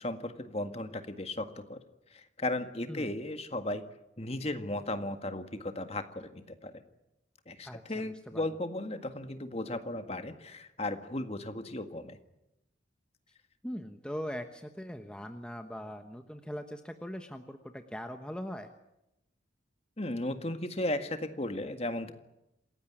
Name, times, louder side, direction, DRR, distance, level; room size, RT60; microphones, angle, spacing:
voice 1, 0.0-1.8 2.1-3.8 4.2-6.8 7.5-12.2 20.0-22.1, left 1 dB, 30° left, 8 dB, 1.8 m, -36 dB
voice 2, 7.6-8.4 13.6-18.7, equal, 5° left, 6 dB, 1.1 m, -41 dB
27.5 x 16.0 x 10.0 m, 0.90 s
head